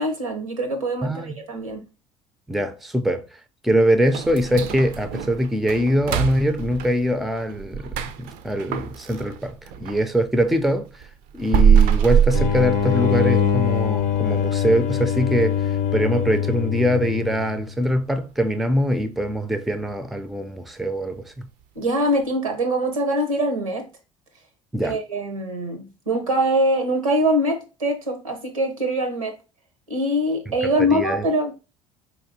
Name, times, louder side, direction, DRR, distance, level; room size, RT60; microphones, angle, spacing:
voice 1, 0.0-1.8 21.7-23.9 24.8-29.4 29.9-31.5, equal, 90° right, 0.9 m, -23 dB
voice 2, 1.0-1.4 2.5-3.3 3.6-11.0 11.3-21.5 24.7-25.0 30.6-31.3, equal, ahead, 0.4 m, -23 dB
sound 1, 4.1-10.1 10.4-13.3 13.6-13.7 14.2-14.3 14.9-15.2 15.5-15.6 16.2-16.3, right 8 dB, 55° right, 0.4 m, -23 dB
sound 2, 12.3-17.7, left 9 dB, 50° left, 0.6 m, -23 dB
4.3 x 2.9 x 2.6 m
figure-of-eight pair, 60°, 17 cm